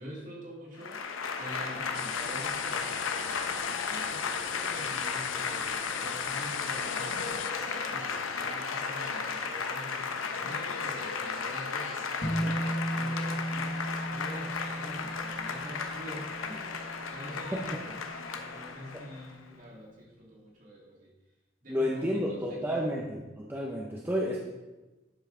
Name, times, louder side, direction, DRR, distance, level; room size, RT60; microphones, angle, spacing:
voice 1, 0.0-3.1 3.7-18.0 18.3-21.1 21.6-22.9, equal, 40° right, -3 dB, 2.1 m, -46 dB
Applause / Crowd, 0.8-19.3, left 5 dB, 85° left, 0.8 m, -34 dB
sound 1, 1.9-7.5, left 11 dB, 65° left, 0.3 m, -39 dB
sound 2, 12.2-18.8, right 1 dB, 30° left, 1.7 m, -36 dB
voice 2, 17.5-17.8 18.9-19.0 21.7-24.4, equal, 10° right, -3 dB, 0.7 m, -31 dB
11.0 x 5.5 x 3.7 m, 1.1 s
head